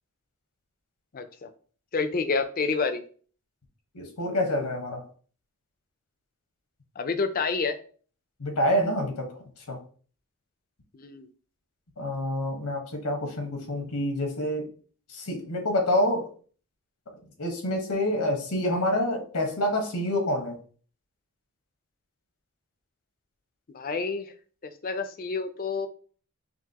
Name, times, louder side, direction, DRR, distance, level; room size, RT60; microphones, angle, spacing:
voice 1, 1.1-1.5 1.9-3.0 7.0-7.7 10.9-11.3 23.7-24.3 24.8-25.9, left 4 dB, 40° left, 9 dB, 0.5 m, -28 dB
voice 2, 3.9-5.0 8.4-9.3 9.7-9.8 12.0-14.7 15.1-16.2 17.4-20.6, left 1 dB, 85° left, 3 dB, 1.2 m, -27 dB
5.9 x 2.6 x 2.8 m, 0.42 s
head